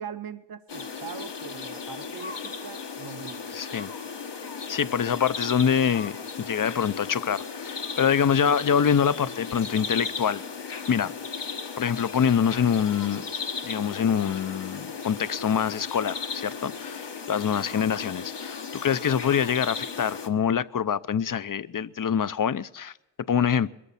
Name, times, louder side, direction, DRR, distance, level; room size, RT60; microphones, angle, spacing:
voice 1, 0.0-3.6, right 7 dB, 55° right, 0.8 m, -41 dB
sound 1, 0.7-20.3, left 5 dB, 75° left, 1.6 m, -36 dB
voice 2, 3.5-3.9 4.7-10.4 10.9-11.1 11.8-13.2 13.6-22.9 23.3-23.7, left 7 dB, 50° left, 0.7 m, -25 dB
22.0 x 13.5 x 4.2 m
wide cardioid pair, 80°, 42 cm